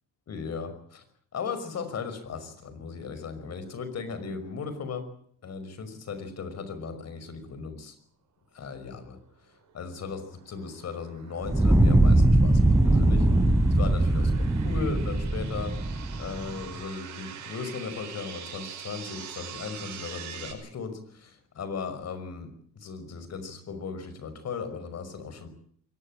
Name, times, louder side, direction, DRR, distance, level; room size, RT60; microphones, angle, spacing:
voice 1, 0.3-1.0 1.3-5.0 5.4-7.9 8.6-9.2 9.7-10.2 10.5-13.2 13.8-15.7 16.2-21.0 21.6-22.5 22.8-25.5, left 5 dB, 60° left, 11 dB, 5.6 m, -37 dB
sound 1, 9.7-20.5, right 9 dB, 80° right, 5.9 m, -44 dB
Fire, 11.4-16.6, right 1 dB, 10° right, 4.0 m, -21 dB
23.0 x 19.5 x 8.9 m, 0.63 s
cardioid pair, 90°, 30 cm